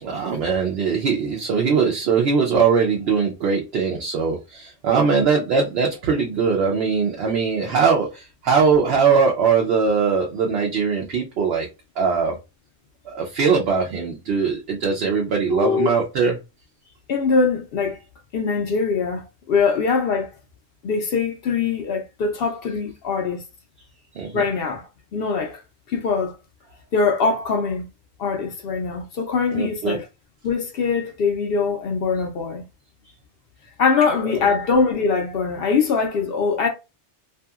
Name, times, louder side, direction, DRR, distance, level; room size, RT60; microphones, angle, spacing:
voice 1, 0.0-11.7 12.0-12.4 13.0-16.4 24.1-24.3 29.5-30.0 34.2-34.4, right 5 dB, 70° right, 0.8 m, -21 dB
voice 2, 15.5-15.9 17.1-18.0 18.3-20.3 20.8-23.4 24.3-25.6 25.9-26.3 26.9-27.9 28.2-30.0 30.4-32.6 33.8-36.7, left 5 dB, 65° left, 0.7 m, -22 dB
2.7 x 2.6 x 2.3 m
omnidirectional pair, 1.1 m